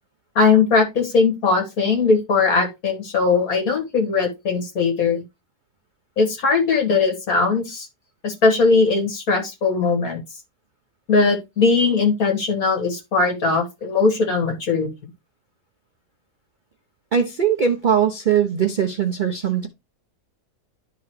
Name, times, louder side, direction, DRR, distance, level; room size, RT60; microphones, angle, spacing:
voice 1, 0.4-5.2 6.2-7.9 8.2-10.2 11.1-14.9, left 4 dB, 60° left, 2.1 m, -19 dB
voice 2, 17.1-19.7, right 8 dB, 50° right, 0.6 m, -20 dB
11.5 x 3.9 x 3.1 m
omnidirectional pair, 1.7 m